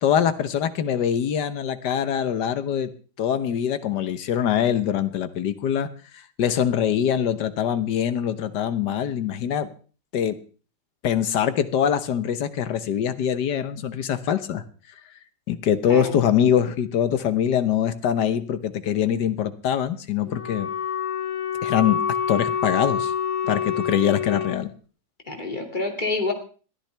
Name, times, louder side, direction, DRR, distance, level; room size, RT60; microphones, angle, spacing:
voice 1, 0.0-2.9 3.2-5.9 6.4-9.7 10.1-10.4 11.0-14.6 15.5-20.7 21.6-22.0 22.3-23.1 23.4-24.7, left 9 dB, 85° left, 12 dB, 1.6 m, -23 dB
voice 2, 15.9-16.2 25.3-26.3, left 3 dB, 30° left, 3 dB, 2.6 m, -27 dB
Wind instrument woodwind instrument, 20.2-24.6, left 7 dB, 55° left, 3.0 m, -27 dB
21.0 x 13.5 x 3.4 m, 0.38 s
omnidirectional pair, 1.8 m